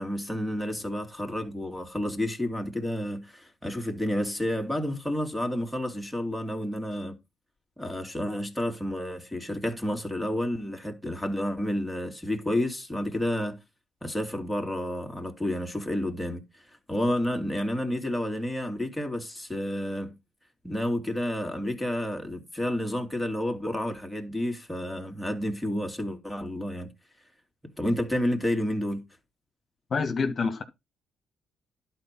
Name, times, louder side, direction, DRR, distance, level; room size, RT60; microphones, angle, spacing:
voice 1, 0.0-7.2 7.8-13.6 14.0-16.4 16.9-20.1 20.6-26.9 27.8-29.0, left 1 dB, 5° left, 2.6 m, -30 dB
voice 2, 29.9-30.6, left 4 dB, 45° left, 1.6 m, -27 dB
11.5 x 4.5 x 6.0 m
cardioid pair, 90°, 0 cm